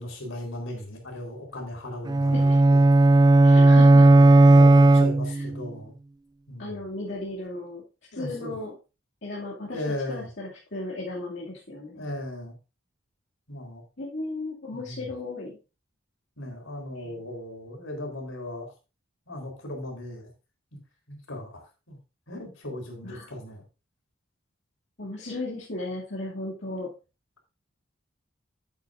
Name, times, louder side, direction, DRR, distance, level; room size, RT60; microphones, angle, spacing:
voice 1, 0.0-2.8 3.7-5.9 6.5-6.9 8.1-8.6 9.7-10.3 11.9-12.5 13.5-13.8 14.7-15.1 16.4-18.7 19.3-20.3 21.1-21.6 21.9-22.0 22.3-23.6, left 1 dB, 80° left, 1 dB, 4.1 m, -37 dB
sound 1, 2.1-5.6, right 2 dB, 20° right, 0.3 m, -15 dB
voice 2, 3.4-4.0 5.4-5.5 6.6-7.8 8.1-8.7 9.2-9.8 10.1-12.0 14.0-15.6 17.0-17.2 23.0-23.3 25.0-26.9, left 2 dB, 55° left, -6 dB, 2.4 m, -35 dB
11.5 x 8.4 x 2.6 m, 0.30 s
head